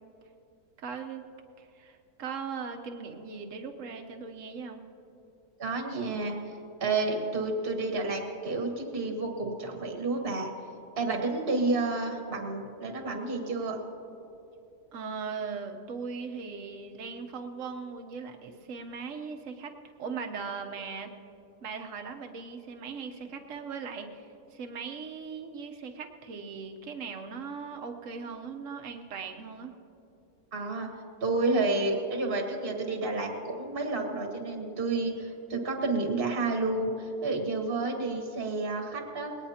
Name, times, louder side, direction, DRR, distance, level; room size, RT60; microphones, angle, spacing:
voice 1, 0.8-1.3 1.6-4.8 14.9-19.7 20.0-21.1 21.6-29.7, right 5 dB, 60° right, 4 dB, 1.3 m, -39 dB
voice 2, 5.6-6.3 6.8-10.5 11.0-13.8 30.5-30.9 31.2-39.3, right 3 dB, 40° right, 2 dB, 1.5 m, -30 dB
20.5 x 18.5 x 2.9 m, 2.9 s
omnidirectional pair, 1.6 m